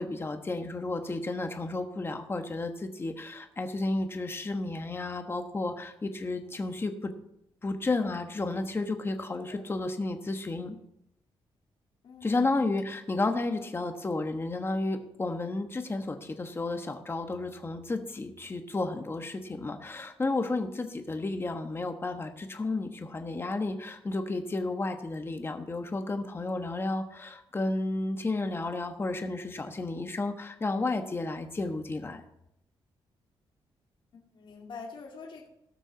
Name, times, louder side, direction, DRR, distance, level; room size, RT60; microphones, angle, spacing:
voice 1, 0.0-7.1 7.6-10.8 12.2-32.2, left 2 dB, 25° left, 6 dB, 1.3 m, -32 dB
voice 2, 12.0-12.5 34.1-35.5, left 4 dB, 60° left, -1 dB, 2.2 m, -45 dB
17.5 x 6.4 x 3.9 m, 0.79 s
cardioid pair, 105°, 10 cm